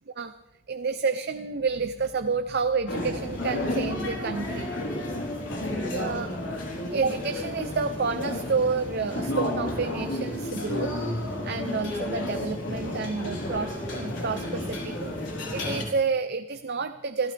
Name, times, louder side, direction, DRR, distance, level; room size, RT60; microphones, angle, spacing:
voice 1, 0.7-4.7 5.9-6.3 6.9-10.9 11.4-15.2 15.5-17.3, right 4 dB, 55° right, 8 dB, 0.7 m, -29 dB
sound 1, 2.9-15.8, left 1 dB, 70° left, 4.0 m, -32 dB
27.5 x 15.0 x 3.4 m, 0.91 s
head